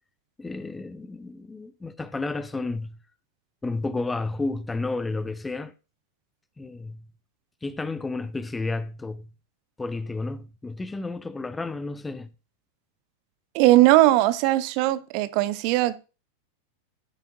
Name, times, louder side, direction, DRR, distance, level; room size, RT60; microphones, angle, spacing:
voice 1, 0.4-3.0 3.6-5.7 6.6-7.0 7.6-9.3 9.8-12.3, left 3 dB, 10° left, 0.6 m, -31 dB
voice 2, 13.5-16.0, right 16 dB, 45° right, 0.6 m, -19 dB
14.5 x 7.0 x 2.7 m
figure-of-eight pair, 90°, 0 cm